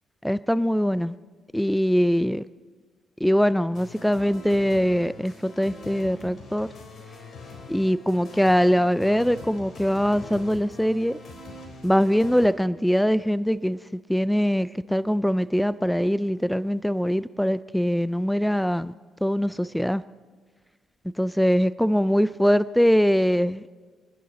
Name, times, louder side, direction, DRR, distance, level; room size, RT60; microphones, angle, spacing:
voice 1, 0.2-1.2 1.5-2.4 3.2-6.7 7.7-11.2 11.8-13.8 14.1-18.9 19.2-20.0 21.2-23.6, equal, ahead, 16 dB, 0.3 m, -22 dB
sound 1, 3.7-12.5, left 3 dB, 55° left, 3.9 m, -43 dB
28.0 x 10.5 x 4.1 m, 1.5 s
cardioid pair, 90°, 0 cm